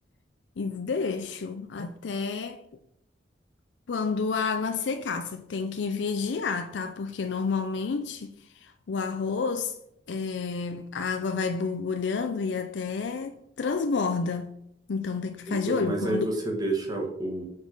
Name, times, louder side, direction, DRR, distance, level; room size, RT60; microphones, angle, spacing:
voice 1, 0.6-2.6 3.9-9.8 10.1-14.6 14.9-16.3, left 5 dB, 80° left, 0.5 m, -30 dB
voice 2, 15.5-17.5, right 2 dB, 20° right, 1.4 m, -29 dB
6.3 x 5.4 x 4.9 m
head